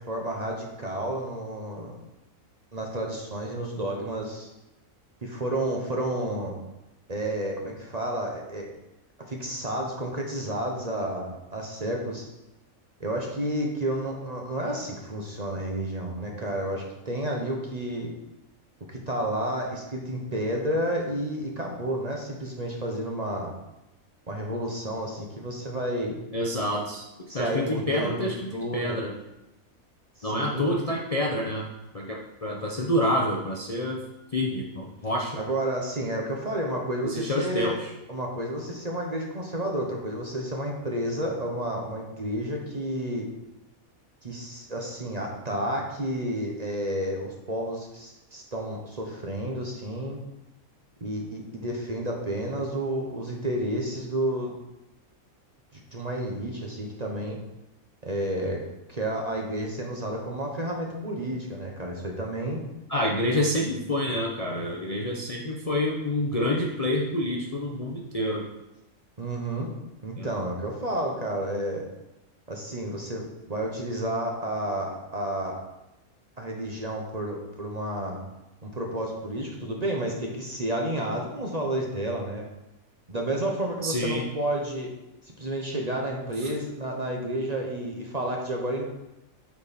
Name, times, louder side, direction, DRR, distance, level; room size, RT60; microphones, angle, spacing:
voice 1, 0.1-2.0 2.7-4.5 5.2-6.6 7.1-8.6 9.3-12.3 13.0-18.1 18.9-23.5 24.3-26.2 27.3-29.0 30.2-30.8 35.4-37.8 38.1-43.3 44.2-50.2 51.0-54.5 55.7-57.4 58.0-58.6 58.9-62.6 69.2-69.7 70.0-71.8 72.5-73.2 73.5-75.6 76.4-78.2 78.6-82.4 83.1-84.9 85.4-88.8, right 1 dB, 30° right, 0 dB, 1.0 m, -31 dB
voice 2, 26.3-27.1 27.3-29.1 30.2-31.7 31.9-34.0 34.3-35.4 37.0-37.9 62.9-68.4 70.2-70.3 83.8-84.2 86.4-86.5, left 1 dB, 35° left, -2 dB, 0.6 m, -28 dB
8.5 x 4.5 x 4.2 m, 0.94 s
omnidirectional pair, 1.5 m